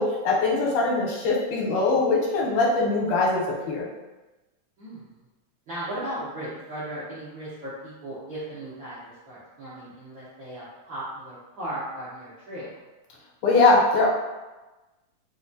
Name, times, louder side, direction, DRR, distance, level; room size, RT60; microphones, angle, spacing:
voice 1, 0.0-3.8 13.4-14.1, left 3 dB, 90° left, -2 dB, 2.2 m, -22 dB
voice 2, 5.7-12.7, right 1 dB, 75° right, -11 dB, 1.1 m, -36 dB
4.6 x 2.3 x 2.6 m, 1.1 s
omnidirectional pair, 3.4 m